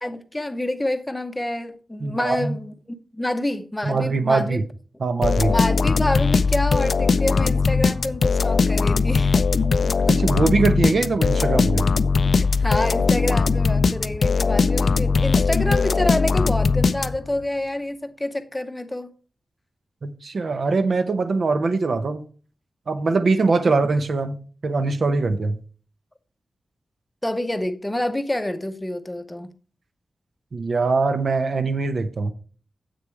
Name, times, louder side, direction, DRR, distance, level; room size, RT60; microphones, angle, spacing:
voice 1, 0.0-4.6 5.5-9.4 12.4-19.1 27.2-29.5, left 1 dB, 10° left, 0.8 m, -27 dB
voice 2, 2.0-2.6 3.8-4.6 5.0-5.5 10.1-11.9 20.0-22.2 22.9-25.6 30.5-32.3, right 3 dB, 60° right, 0.8 m, -22 dB
sound 1, 5.2-17.4, left 4 dB, 60° left, 0.4 m, -20 dB
7.7 x 6.6 x 4.6 m
wide cardioid pair, 140°, 0 cm